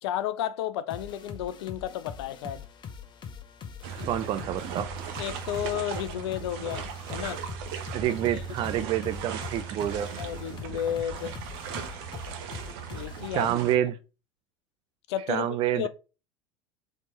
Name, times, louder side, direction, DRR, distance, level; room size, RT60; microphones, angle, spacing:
voice 1, 0.0-2.6 5.2-7.4 8.3-8.4 10.2-11.3 12.9-13.5 15.1-15.5 15.7-15.9, left 11 dB, 60° left, 0.4 m, -32 dB
sound 1, 0.9-13.3, left 7 dB, 30° left, 0.7 m, -43 dB
sound 2, 3.8-13.8, right 7 dB, 55° right, 0.8 m, -38 dB
voice 2, 4.1-4.9 7.9-10.1 13.3-14.0 15.3-15.9, right 11 dB, 35° right, 0.4 m, -27 dB
4.2 x 3.1 x 3.0 m
figure-of-eight pair, 75°, 16 cm